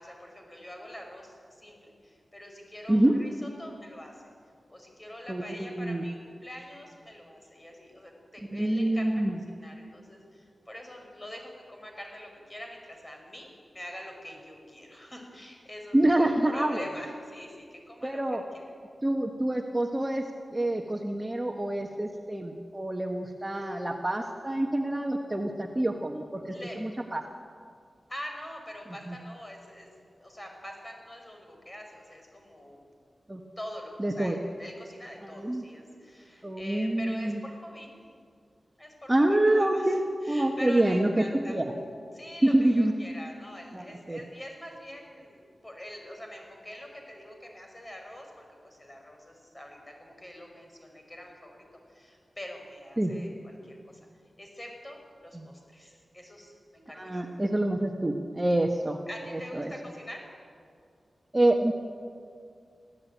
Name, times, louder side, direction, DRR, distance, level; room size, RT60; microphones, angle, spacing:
voice 1, 0.0-4.3 4.7-9.1 9.5-18.6 23.5-23.8 26.5-26.8 28.1-29.9 30.2-32.8 33.6-37.9 38.8-41.6 42.1-51.6 51.9-54.0 54.4-57.2 59.1-60.2, left 1 dB, 20° left, 2 dB, 5.6 m, -44 dB
voice 2, 5.3-6.0 8.5-9.4 15.9-16.9 18.0-18.4 19.0-27.2 29.1-29.2 33.3-33.4 34.0-34.4 35.2-35.6 36.4-37.4 39.1-41.7 42.4-42.9 43.7-44.2 53.0-53.1 55.3-55.5 56.9-59.0 59.3-59.7 61.3-61.7, right 1 dB, 20° right, 2 dB, 1.4 m, -27 dB
25.0 x 15.5 x 9.2 m, 2.3 s
wide cardioid pair, 85°, 0 cm